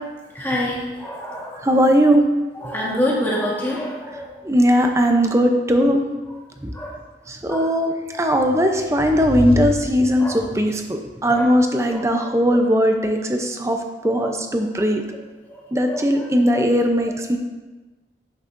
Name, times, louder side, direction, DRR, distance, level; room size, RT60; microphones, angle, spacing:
voice 1, 0.3-1.7 2.5-4.4 6.7-7.0 7.5-7.7 10.2-10.4 11.3-11.5 11.9-12.3 14.1-14.3 14.8-14.9 15.5-16.6, left 1 dB, 10° left, -4 dB, 1.4 m, -27 dB
voice 2, 1.6-2.2 4.4-6.0 6.6-6.7 7.3-15.0 15.7-17.4, equal, 15° right, 4 dB, 0.6 m, -19 dB
sound 1, 8.3-10.7, left 1 dB, 50° right, 1.0 m, -28 dB
11.0 x 6.3 x 2.6 m, 1.2 s
head